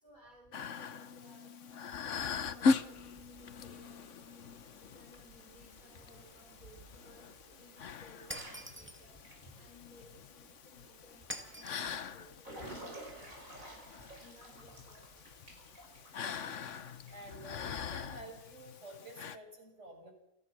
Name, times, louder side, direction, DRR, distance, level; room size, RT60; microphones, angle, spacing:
voice 1, 0.0-4.5 4.8-6.8 7.0-13.1 13.6-13.8 14.2-15.2, equal, 35° left, -3 dB, 5.4 m, -60 dB
sound 1, 0.5-19.4, left 4 dB, 65° left, 1.3 m, -40 dB
Water / Splash splatter / Drip, 2.8-18.0, right 2 dB, 85° right, 7.3 m, -55 dB
Shatter, 8.3-9.1 11.3-12.0, equal, 10° right, 2.1 m, -44 dB
voice 2, 16.2-16.5 17.1-20.1, right 1 dB, 60° right, 2 dB, 7.1 m, -50 dB
29.0 x 19.5 x 6.2 m, 0.88 s
omnidirectional pair, 1.4 m